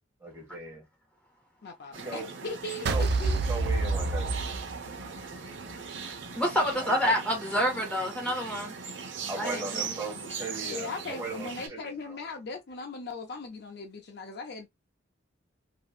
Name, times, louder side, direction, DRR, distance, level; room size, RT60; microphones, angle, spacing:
voice 1, 0.2-0.8 1.9-2.3 2.9-3.0 3.5-4.3 6.8-7.0 9.3-12.2, right 3 dB, 15° right, 1.4 m, -38 dB
voice 2, 1.6-3.4 10.7-14.7, left 3 dB, 60° left, 0.5 m, -39 dB
sound 1, 1.9-11.7, right 5 dB, 80° right, 0.8 m, -39 dB
sound 2, 2.9-5.2, right 3 dB, 60° right, 0.4 m, -27 dB
voice 3, 6.3-8.8 9.3-10.0, equal, 5° left, 1.4 m, -28 dB
2.9 x 2.6 x 2.3 m
head